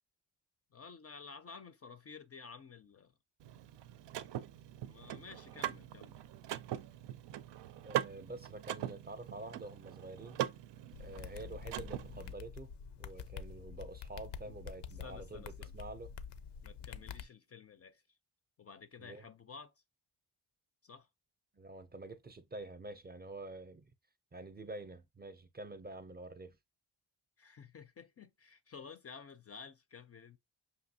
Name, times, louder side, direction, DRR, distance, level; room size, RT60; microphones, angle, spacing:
voice 1, 0.7-3.1 4.9-6.2 14.5-14.6 15.0-15.7 16.6-18.0 18.6-19.7 20.8-21.1 27.4-30.4, left 5 dB, 35° left, 0.4 m, -52 dB
Car / Mechanisms, 3.4-12.3, right 12 dB, 90° right, 0.5 m, -42 dB
voice 2, 7.8-10.4 11.0-12.7 13.0-16.1 19.0-19.2 21.5-23.9 24.3-26.6, right 2 dB, 25° right, 0.5 m, -47 dB
sound 1, 10.9-17.2, left 7 dB, 85° left, 0.6 m, -47 dB
5.9 x 2.7 x 2.7 m
wide cardioid pair, 115°, 41 cm